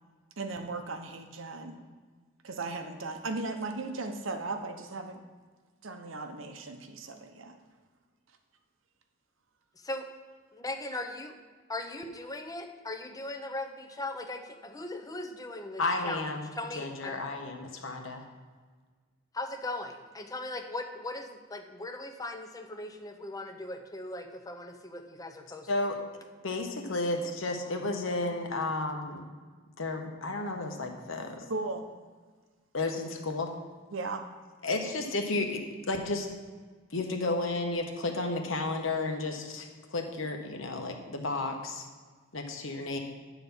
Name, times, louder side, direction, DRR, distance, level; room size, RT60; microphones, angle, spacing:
voice 1, 0.4-1.8 2.4-5.2 5.8-7.6 31.5-31.9 33.9-34.2, right 3 dB, 70° right, 6 dB, 0.9 m, -37 dB
voice 2, 10.6-11.3 11.7-17.2 19.3-25.7, left 2 dB, 20° left, 5 dB, 0.7 m, -39 dB
voice 3, 15.8-16.5 16.8-18.2 25.7-26.0 26.4-29.3 29.8-31.4 32.7-33.5 34.6-35.6 35.9-36.3 36.9-41.9 42.3-43.0, left 2 dB, 75° left, 3 dB, 1.2 m, -32 dB
10.5 x 4.0 x 7.1 m, 1.5 s
head